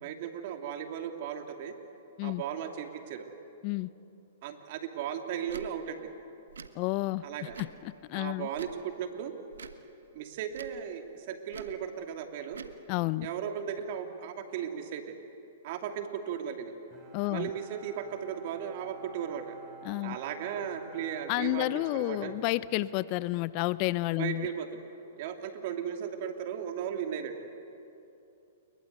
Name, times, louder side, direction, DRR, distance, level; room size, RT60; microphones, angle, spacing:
voice 1, 0.0-1.7 2.2-3.3 4.4-6.1 7.2-7.6 8.1-9.3 10.1-12.6 13.2-15.1 15.6-16.7 17.3-19.6 20.0-22.3 24.2-24.7 25.2-27.5, right 8 dB, 50° right, 5 dB, 2.6 m, -36 dB
Tick / Tick-tock, 5.5-5.7 6.5-6.7 7.5-7.8 8.5-8.8 9.5-9.8 10.5-10.8 11.5-11.8 12.5-12.8, right 6 dB, 75° right, 1.3 m, -45 dB
voice 2, 6.7-7.2 7.6-8.5 12.9-13.3 17.1-17.5 19.8-20.2 21.3-24.5, left 19 dB, 40° left, 18 dB, 0.6 m, -30 dB
Bowed string instrument, 16.9-23.1, right 3 dB, 25° right, 5.5 m, -51 dB
29.0 x 22.5 x 8.1 m, 2.8 s
hypercardioid pair, 115°, 0 cm